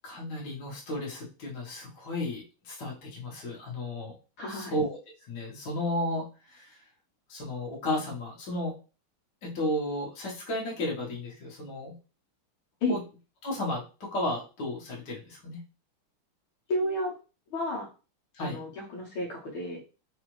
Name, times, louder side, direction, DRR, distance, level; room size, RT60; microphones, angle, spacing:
voice 1, 0.0-4.2 4.5-5.0 5.3-6.8 7.3-8.8 9.4-12.0 12.9-13.0 13.4-15.6 18.3-18.6, left 1 dB, 55° left, -3 dB, 1.9 m, -33 dB
voice 2, 4.4-4.7 12.8-13.0 16.7-17.2 17.5-17.9 18.4-19.8, left 1 dB, 75° left, -3 dB, 1.9 m, -31 dB
4.9 x 2.5 x 3.1 m, 0.33 s
omnidirectional pair, 2.3 m